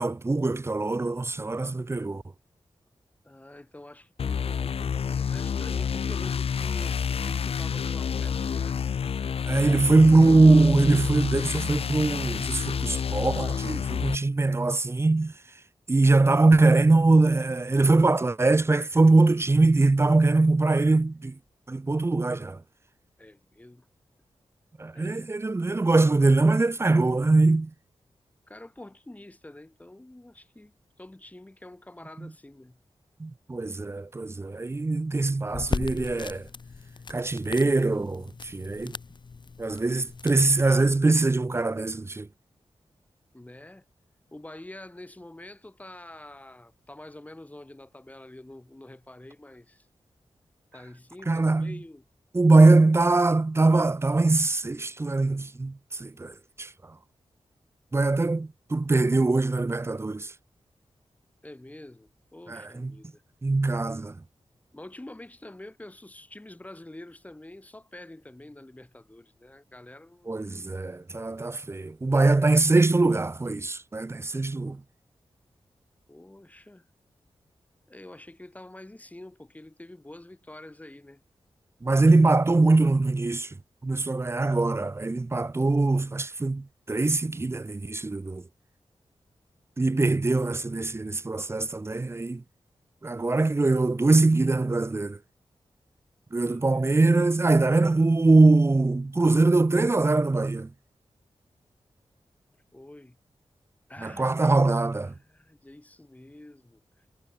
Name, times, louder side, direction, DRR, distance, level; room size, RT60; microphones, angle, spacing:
voice 1, 0.0-2.2 9.5-15.3 15.9-21.3 21.7-22.6 24.8-27.7 32.2-32.3 33.2-36.5 37.1-38.9 39.6-42.3 51.3-51.8 52.3-56.7 57.9-60.3 62.5-62.9 63.4-64.2 70.3-74.8 81.8-83.5 83.8-88.4 89.8-92.4 93.0-95.2 96.3-100.7 104.0-105.1, right 3 dB, 25° right, 0.9 m, -22 dB
voice 2, 3.2-9.0 23.2-23.9 24.9-25.3 28.5-32.8 43.3-43.8 44.3-49.9 50.7-52.0 61.4-63.2 64.7-70.3 76.1-76.9 77.9-81.2 96.5-96.8 102.7-103.2 103.9-104.6 105.0-107.1, left 1 dB, 15° left, 5.1 m, -47 dB
sound 1, 4.2-14.2, left 7 dB, 70° left, 0.6 m, -29 dB
sound 2, 35.5-41.0, left 4 dB, 45° left, 1.7 m, -38 dB
wide cardioid pair, 140°, 11 cm